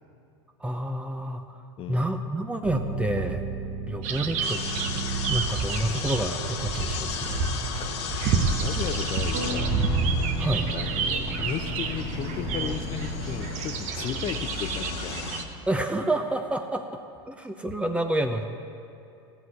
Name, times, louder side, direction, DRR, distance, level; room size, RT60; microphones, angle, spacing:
voice 1, 0.6-1.6 1.9-3.4 3.9-4.6 5.3-7.4 10.4-10.7 15.7-16.9 17.3-18.4, right 1 dB, 10° right, 5 dB, 0.7 m, -28 dB
sound 1, 2.6-5.8 9.3-13.9, right 1 dB, 75° right, 2.0 m, -34 dB
sound 2, 4.0-15.4, right 5 dB, 55° right, 1.1 m, -29 dB
sound 3, 4.4-15.4, left 7 dB, 80° left, 1.3 m, -36 dB
voice 2, 8.3-9.7 10.7-15.2, left 9 dB, 40° left, 11 dB, 0.7 m, -35 dB
16.0 x 6.3 x 9.7 m, 2.6 s
supercardioid pair, 110°, 14 cm